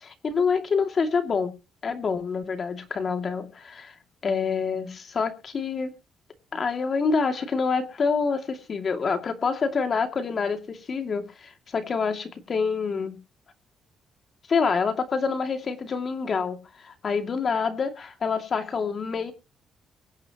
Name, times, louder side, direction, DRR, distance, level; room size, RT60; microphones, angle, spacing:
voice 1, 0.0-1.5 1.8-3.9 4.2-5.9 6.5-13.2 14.5-19.3, left 5 dB, 45° left, 2.4 m, -27 dB
23.5 x 9.1 x 3.0 m
cardioid pair, 90°, 0 cm